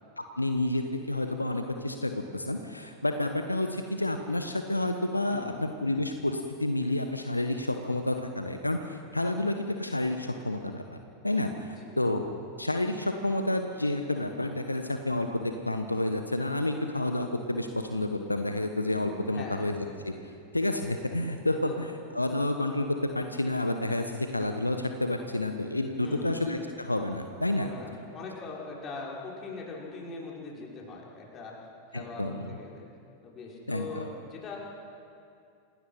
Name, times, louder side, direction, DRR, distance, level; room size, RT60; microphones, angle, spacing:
voice 1, 0.2-10.8 11.2-12.2 12.6-20.1 20.5-27.7 31.9-32.4 33.7-34.1, left 1 dB, 85° left, 6 dB, 1.1 m, -30 dB
voice 2, 19.3-19.6 21.6-21.9 26.0-26.4 27.6-31.5 31.9-32.8 33.2-34.6, left 3 dB, 30° left, -3 dB, 5.4 m, -41 dB
27.5 x 18.0 x 5.8 m, 2.5 s
figure-of-eight pair, 90°, 0 cm